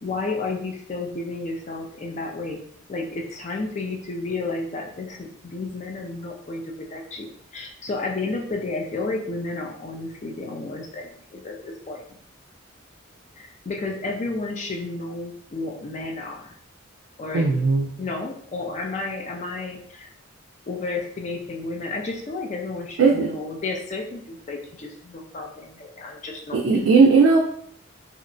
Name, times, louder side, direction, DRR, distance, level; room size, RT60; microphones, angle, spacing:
voice 1, 0.0-2.6 2.9-12.2 13.4-16.5 17.2-17.7 18.0-20.1 20.7-26.9, left 3 dB, 35° left, 1 dB, 0.4 m, -32 dB
voice 2, 17.3-17.9 23.0-23.3 26.5-27.4, right 4 dB, 80° right, 0 dB, 0.3 m, -17 dB
2.7 x 2.1 x 2.5 m, 0.64 s
head